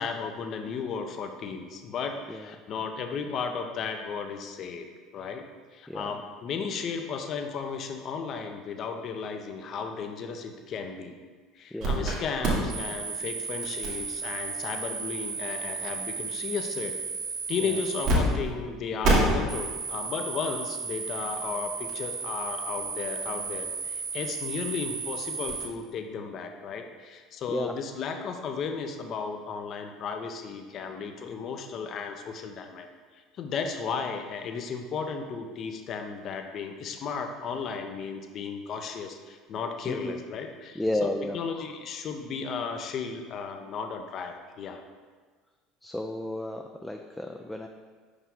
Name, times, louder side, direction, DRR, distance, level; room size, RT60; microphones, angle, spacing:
voice 1, 0.0-4.9 5.1-5.5 5.7-11.2 11.6-17.0 17.5-32.9 33.1-44.8, left 5 dB, 50° left, 5 dB, 0.6 m, -34 dB
voice 2, 11.7-12.1 17.6-17.8 27.5-27.7 39.9-40.2 40.7-41.4 45.8-47.7, left 1 dB, 5° left, 3 dB, 0.4 m, -32 dB
sound 1, 11.8-12.1 12.4-18.2 18.4-18.5 19.0-25.7, right 3 dB, 55° right, 1.6 m, -31 dB
5.4 x 4.9 x 3.7 m, 1.5 s
hypercardioid pair, 70°, 0 cm